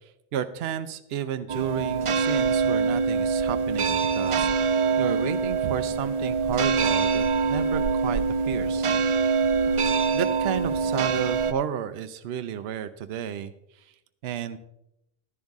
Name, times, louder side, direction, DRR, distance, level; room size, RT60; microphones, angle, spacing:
voice 1, 0.3-8.2 8.5-8.9 9.9-13.5 14.2-14.6, right 9 dB, 70° right, 11 dB, 0.8 m, -32 dB
sound 1, 1.5-11.5, right 5 dB, 50° right, 0.3 m, -24 dB
11.5 x 10.5 x 3.5 m, 0.83 s
omnidirectional pair, 1.1 m